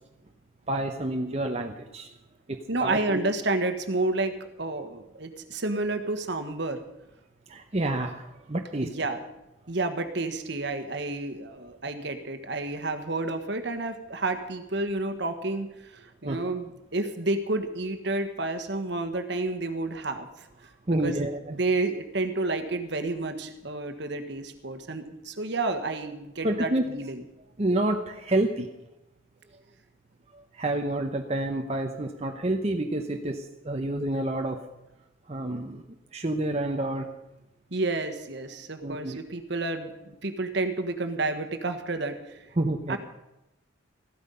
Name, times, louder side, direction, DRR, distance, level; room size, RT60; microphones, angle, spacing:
voice 1, 0.7-2.1 2.5-3.2 7.5-8.9 16.2-16.4 20.9-21.6 26.4-26.8 27.6-28.8 30.3-34.7 35.3-35.8 36.1-37.1 38.8-39.2 42.6-43.0, right 1 dB, 30° right, 3 dB, 0.8 m, -29 dB
voice 2, 2.7-6.8 8.8-9.2 9.7-20.3 20.9-27.2 37.7-42.4 42.9-43.0, right 2 dB, 60° right, 8 dB, 1.4 m, -30 dB
15.0 x 12.5 x 5.5 m, 0.91 s
head